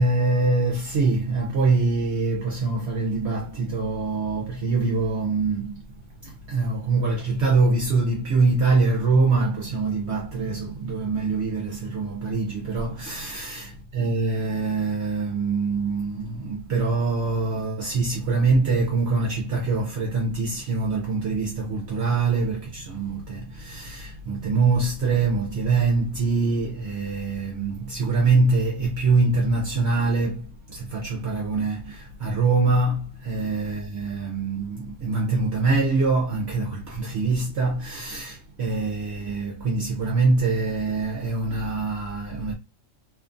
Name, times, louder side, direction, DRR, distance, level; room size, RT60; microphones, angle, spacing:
voice 1, 0.0-5.9 6.2-13.7 13.9-42.5, right 3 dB, 60° right, 0.9 m, -24 dB
2.8 x 2.4 x 2.5 m
omnidirectional pair, 1.3 m